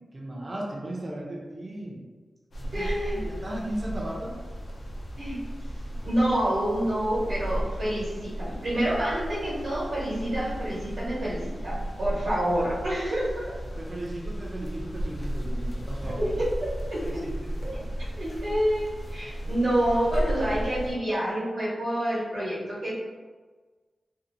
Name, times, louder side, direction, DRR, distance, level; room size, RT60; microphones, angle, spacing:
voice 1, 0.1-2.0 2.6-4.4 13.8-16.3 17.0-17.5, right 1 dB, 35° right, -3 dB, 0.5 m, -36 dB
sound 1, 2.5-20.9, equal, 55° left, 0.4 m, -34 dB
voice 2, 2.7-3.2 5.1-5.4 6.0-13.6 16.0-17.0 17.6-22.9, right 1 dB, 75° right, -9 dB, 1.0 m, -28 dB
2.6 x 2.0 x 2.5 m, 1.4 s
wide cardioid pair, 130°, 0 cm